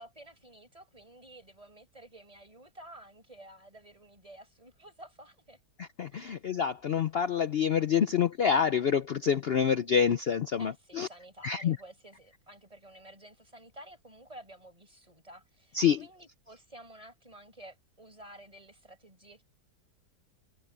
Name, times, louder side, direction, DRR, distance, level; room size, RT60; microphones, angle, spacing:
voice 1, 0.0-5.6 6.1-6.3 10.6-19.4, right 1 dB, 20° right, 6.2 m, -52 dB
voice 2, 5.8-11.1 11.4-11.8 15.7-16.0, left 7 dB, 80° left, 0.5 m, -27 dB
omnidirectional pair, 1.8 m